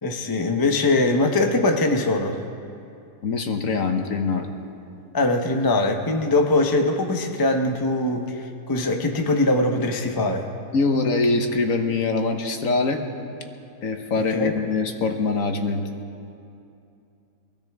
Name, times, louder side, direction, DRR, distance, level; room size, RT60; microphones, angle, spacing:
voice 1, 0.0-2.4 5.1-10.5 14.2-14.5, left 2 dB, 20° left, 3 dB, 0.6 m, -22 dB
voice 2, 3.2-4.5 10.7-13.0 13.8-15.8, left 3 dB, 60° left, 5 dB, 1.3 m, -23 dB
23.0 x 15.5 x 3.5 m, 2.6 s
omnidirectional pair, 1.7 m